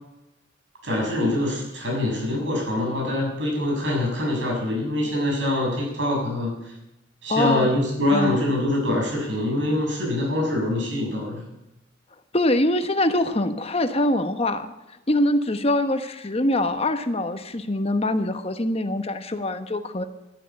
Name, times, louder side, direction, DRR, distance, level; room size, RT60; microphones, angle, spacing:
voice 1, 0.8-6.5 7.2-11.4, left 1 dB, 75° right, -2 dB, 7.0 m, -24 dB
voice 2, 7.3-7.7 8.1-8.4 12.3-14.7 15.1-20.0, left 1 dB, 30° left, 8 dB, 1.1 m, -23 dB
13.0 x 11.0 x 8.8 m, 0.95 s
head